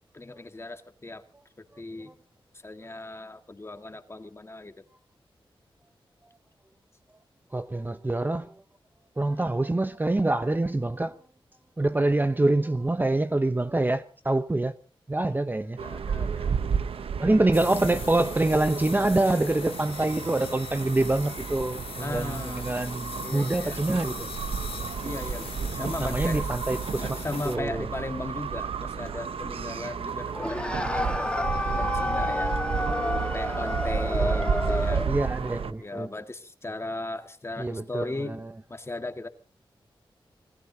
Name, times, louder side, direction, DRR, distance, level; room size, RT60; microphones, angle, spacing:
voice 1, 0.1-1.2 1.8-2.1 2.6-4.8 9.4-9.5 15.3-15.4 15.8-16.5 22.0-22.7 23.2-23.8 25.0-26.5 27.0-31.3 31.7-32.5 33.0-35.0 35.8-38.4 38.7-39.3, left 2 dB, 25° left, 1.8 m, -37 dB
voice 2, 7.5-8.5 9.2-11.1 11.8-14.7 15.1-15.8 17.2-24.3 25.8-27.9 35.1-36.1 37.6-38.5, right 2 dB, 20° right, 0.8 m, -26 dB
sound 1, 15.8-35.7, right 6 dB, 85° right, 0.8 m, -32 dB
sound 2, 17.5-27.6, left 6 dB, 90° left, 1.5 m, -41 dB
sound 3, 30.3-35.2, left 1 dB, 10° left, 1.4 m, -29 dB
26.0 x 19.0 x 2.8 m
wide cardioid pair, 90°, 9 cm